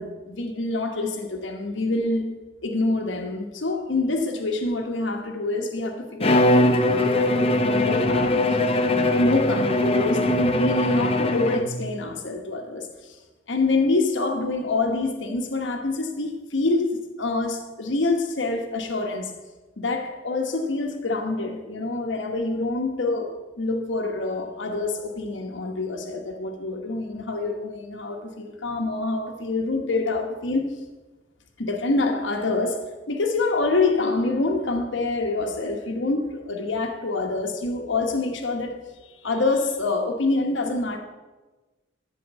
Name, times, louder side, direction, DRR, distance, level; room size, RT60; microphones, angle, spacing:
voice 1, 0.0-2.4 2.6-8.6 9.2-13.2 13.5-19.3 19.8-30.8 31.6-41.0, left 2 dB, 85° left, 1.1 m, -26 dB
Bowed string instrument, 6.2-11.8, left 1 dB, 30° left, 0.8 m, -21 dB
13.5 x 4.6 x 8.1 m
head